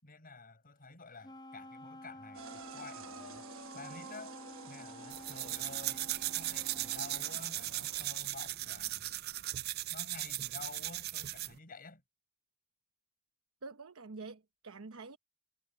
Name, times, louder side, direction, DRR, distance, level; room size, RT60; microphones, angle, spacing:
voice 1, 0.0-4.4 4.7-6.1 6.3-9.1 9.9-12.0, left 3 dB, 45° left, 4.7 m, -51 dB
Wind instrument woodwind instrument, 1.2-7.3, left 1 dB, 20° left, 0.8 m, -51 dB
sound 1, 2.3-8.1, right 6 dB, 65° right, 1.2 m, -50 dB
sound 2, 5.1-11.6, right 15 dB, 50° right, 0.4 m, -38 dB
voice 2, 13.6-15.2, right 3 dB, 80° right, 1.0 m, -47 dB
head